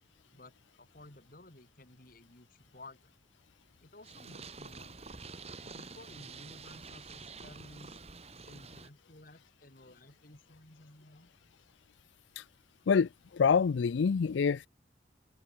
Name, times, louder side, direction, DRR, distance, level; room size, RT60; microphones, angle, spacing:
voice 1, 0.3-3.1 3.8-5.1 5.6-8.0 8.4-11.3, left 2 dB, 50° left, 3.1 m, -55 dB
Purr, 4.0-8.9, right 4 dB, 35° right, 2.5 m, -48 dB
voice 2, 12.9-14.7, left 6 dB, 85° left, 0.4 m, -27 dB
head